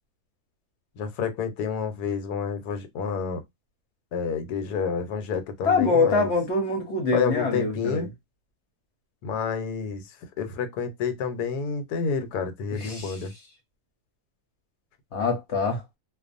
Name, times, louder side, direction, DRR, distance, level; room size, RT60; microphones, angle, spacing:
voice 1, 1.0-3.4 4.1-6.3 7.1-8.1 9.2-10.0 10.4-13.3, left 6 dB, 80° left, 1.2 m, -29 dB
voice 2, 5.6-8.1 12.7-13.2 15.1-15.8, left 4 dB, 55° left, 0.9 m, -24 dB
2.5 x 2.2 x 2.4 m
omnidirectional pair, 1.6 m